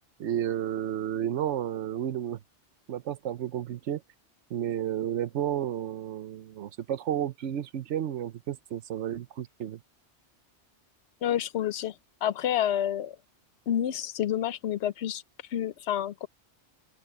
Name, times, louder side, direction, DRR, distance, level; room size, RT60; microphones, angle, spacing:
voice 1, 0.2-2.4 2.9-4.0 4.5-9.8, right 10 dB, 80° right, 1.1 m, -32 dB
voice 2, 11.2-11.9 12.2-13.1 13.7-15.2 15.5-16.3, left 10 dB, 70° left, 0.9 m, -28 dB
omnidirectional pair, 1.2 m